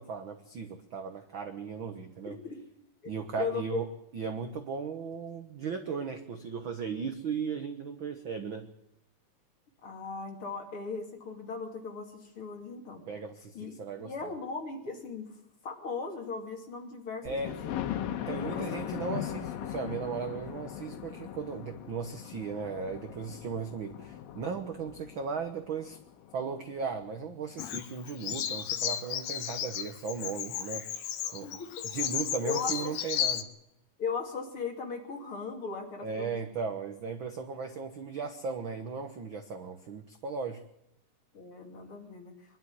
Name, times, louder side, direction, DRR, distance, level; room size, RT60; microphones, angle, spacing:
voice 1, 0.0-2.4 3.0-3.9 4.1-8.7 13.1-14.1 17.2-17.5 18.2-26.0 26.3-31.1 31.3-31.6 31.8-33.5 36.0-40.6, right 5 dB, 70° right, 7 dB, 1.1 m, -36 dB
voice 2, 2.2-2.6 3.4-3.8 9.8-13.0 13.5-15.3 15.6-17.8 18.4-19.0 31.4-31.9 32.4-32.9 34.0-36.3 41.3-42.3, left 5 dB, 40° left, 2 dB, 3.3 m, -38 dB
Thunder, 17.3-27.0 27.5-27.6 28.1-28.2 28.4-28.5, left 11 dB, 90° left, 2.9 m, -39 dB
Bird vocalization bird call bird song, 27.6-33.4, left 10 dB, 70° left, 1.7 m, -34 dB
23.5 x 11.5 x 9.7 m, 0.86 s
omnidirectional pair, 4.0 m